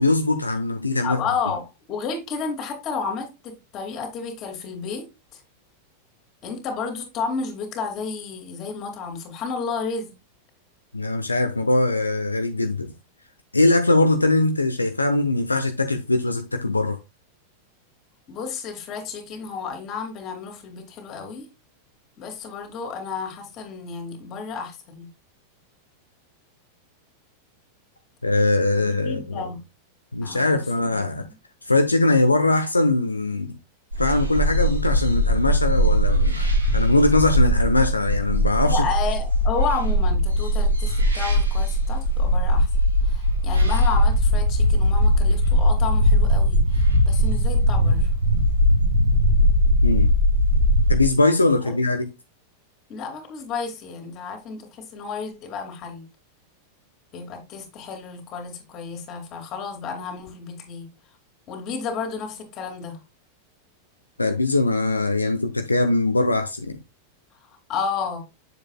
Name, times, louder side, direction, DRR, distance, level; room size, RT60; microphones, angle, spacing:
voice 1, 0.0-1.2 10.9-12.9 13.5-17.0 28.2-29.5 30.1-31.3 31.6-33.6 34.0-38.9 49.8-50.1 50.9-52.1 64.2-66.8, left 2 dB, 80° left, 0.8 m, -21 dB
voice 2, 1.0-1.6 1.9-5.1 5.3-5.4 6.4-10.1 18.3-21.5 22.2-25.1 28.7-29.6 30.2-31.3 38.6-42.7 43.0-48.1 51.6-51.7 52.9-56.1 57.1-60.9 61.5-63.0 67.7-68.2, left 5 dB, 35° left, 3.0 m, -32 dB
sound 1, 33.9-51.1, equal, 80° right, 2.6 m, -20 dB
8.0 x 7.4 x 2.3 m
figure-of-eight pair, 90°, 0 cm